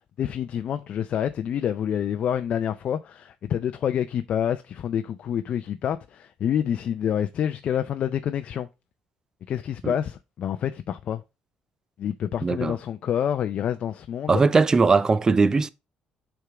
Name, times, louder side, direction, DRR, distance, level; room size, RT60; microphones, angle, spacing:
voice 1, 0.2-8.7 9.5-11.2 12.0-14.4, left 9 dB, 55° left, 0.4 m, -27 dB
voice 2, 12.4-12.8 14.3-15.7, right 4 dB, 25° right, 0.5 m, -20 dB
6.6 x 3.6 x 4.7 m
cardioid pair, 95°, 2 cm